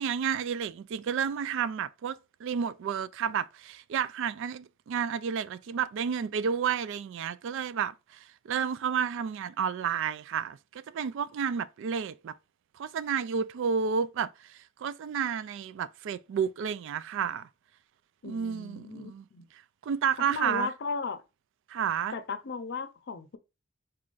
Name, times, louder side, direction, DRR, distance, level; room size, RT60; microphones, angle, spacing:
voice 1, 0.0-12.3 12.8-17.5 18.2-19.2 19.8-20.7 21.7-22.1, right 7 dB, 65° right, 0.3 m, -31 dB
voice 2, 18.2-19.5 20.3-21.2 22.1-23.4, left 4 dB, 55° left, 0.6 m, -36 dB
4.3 x 2.5 x 3.7 m
head